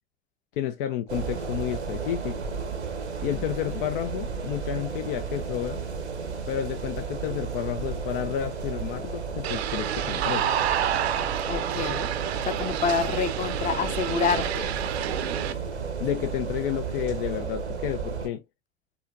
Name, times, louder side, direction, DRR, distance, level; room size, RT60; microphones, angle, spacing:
voice 1, 0.6-2.4 3.2-5.8 6.5-10.5 16.0-18.4, left 11 dB, 55° left, 0.5 m, -31 dB
sound 1, 1.1-18.3, right 5 dB, 90° right, 1.0 m, -33 dB
sound 2, 9.4-15.5, right 10 dB, 70° right, 0.7 m, -29 dB
voice 2, 11.5-12.1 12.4-14.7, left 6 dB, 25° left, 0.7 m, -28 dB
5.6 x 2.9 x 2.5 m
figure-of-eight pair, 80°, 33 cm